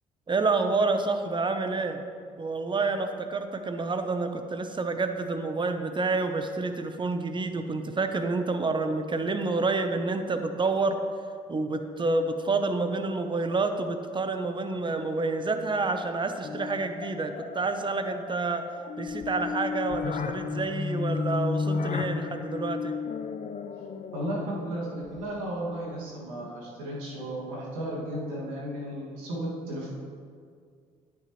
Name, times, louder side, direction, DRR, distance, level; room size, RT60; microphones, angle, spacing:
voice 1, 0.3-2.0 2.4-11.0 11.5-18.6 19.0-22.9, right 3 dB, 30° right, 7 dB, 1.0 m, -28 dB
sound 1, 16.4-25.5, left 5 dB, 50° left, 0.7 m, -33 dB
voice 2, 24.1-29.9, right 1 dB, 90° right, -6 dB, 2.3 m, -34 dB
9.4 x 9.4 x 3.2 m, 2.1 s
hypercardioid pair, 60°, 17 cm